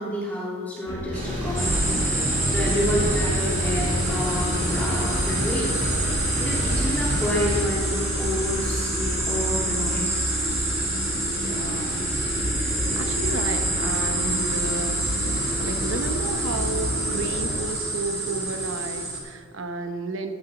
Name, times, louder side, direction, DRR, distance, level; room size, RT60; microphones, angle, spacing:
voice 1, 0.0-1.9 2.5-5.8 6.3-10.3, left 1 dB, 5° left, -6 dB, 2.1 m, -29 dB
sound 1, 0.9-17.6, left 1 dB, 55° left, 1.1 m, -32 dB
sound 2, 1.1-7.6, right 1 dB, 35° right, 2.1 m, -28 dB
sound 3, 1.6-19.2, right 1 dB, 15° right, 3.0 m, -27 dB
voice 2, 2.7-3.1 11.4-15.0 15.6-20.4, right 3 dB, 70° right, 8 dB, 0.9 m, -32 dB
15.0 x 8.8 x 4.0 m, 2.1 s
head